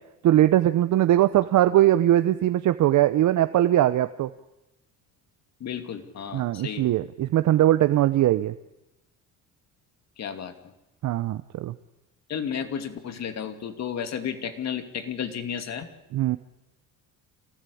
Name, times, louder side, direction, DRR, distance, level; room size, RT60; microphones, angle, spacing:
voice 1, 0.2-4.3 6.3-8.5 11.0-11.8 16.1-16.4, right 13 dB, 60° right, 11 dB, 0.9 m, -21 dB
voice 2, 5.6-6.9 10.2-10.6 12.3-15.9, left 8 dB, 50° left, 8 dB, 2.6 m, -32 dB
25.5 x 18.0 x 8.6 m, 0.97 s
cardioid pair, 110°, 34 cm